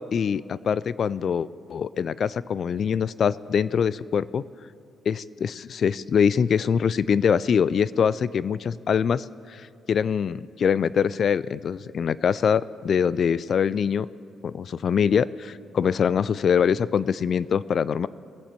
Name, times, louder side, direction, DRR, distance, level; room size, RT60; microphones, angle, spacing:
voice 1, 0.0-4.4 5.1-14.1 14.4-18.1, left 7 dB, 55° left, 19 dB, 0.3 m, -24 dB
21.5 x 8.1 x 4.4 m, 2.4 s
cardioid pair, 90°, 0 cm